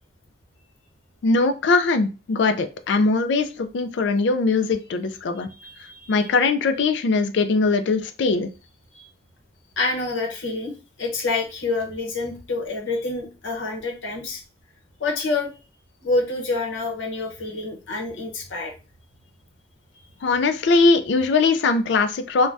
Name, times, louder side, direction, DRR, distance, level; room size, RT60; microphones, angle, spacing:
voice 1, 1.2-5.5 6.1-8.5 20.2-22.5, left 3 dB, 60° left, 9 dB, 0.3 m, -21 dB
voice 2, 5.6-6.2 8.9-9.1 9.8-10.7 11.0-14.4 15.0-15.5 16.0-18.7, left 3 dB, 80° left, 1 dB, 0.8 m, -27 dB
2.5 x 2.2 x 3.3 m, 0.32 s
head